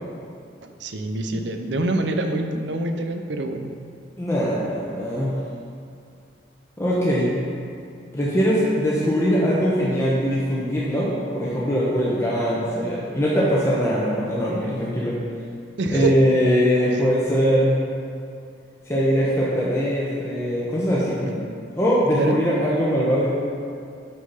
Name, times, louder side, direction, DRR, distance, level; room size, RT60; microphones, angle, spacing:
voice 1, 0.6-3.7 15.8-16.1 16.9-17.0 22.1-22.4, right 2 dB, 75° right, 6 dB, 0.6 m, -26 dB
voice 2, 4.2-5.4 6.8-7.3 8.1-15.2 15.9-17.8 18.9-21.5 21.7-23.4, equal, 15° left, -7 dB, 0.9 m, -21 dB
6.2 x 5.7 x 5.5 m, 2.4 s
head